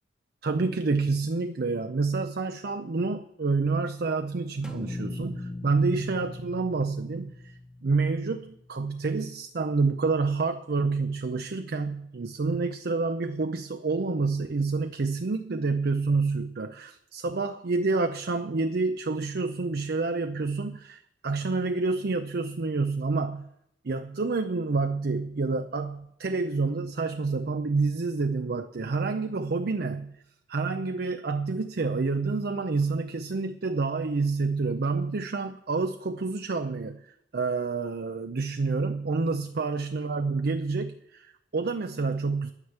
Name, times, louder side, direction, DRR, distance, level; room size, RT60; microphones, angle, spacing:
voice 1, 0.4-23.5 23.8-30.1 30.5-37.1 37.3-42.5, right 3 dB, 55° right, 8 dB, 0.5 m, -28 dB
sound 1, 4.6-8.8, left 2 dB, 5° right, 0.9 m, -40 dB
10.5 x 9.8 x 7.1 m, 0.78 s
head